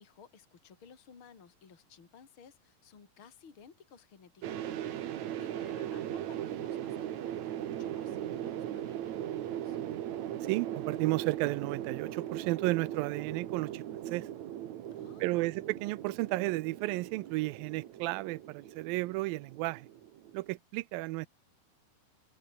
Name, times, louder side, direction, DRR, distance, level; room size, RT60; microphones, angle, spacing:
voice 1, 0.0-9.8 14.9-15.5, left 6 dB, 35° left, 3.6 m, -56 dB
sound 1, 4.4-20.6, right 11 dB, 60° right, 2.4 m, -39 dB
voice 2, 10.4-14.3 15.2-19.9 20.3-21.3, right 20 dB, 85° right, 2.4 m, -33 dB
omnidirectional pair, 4.1 m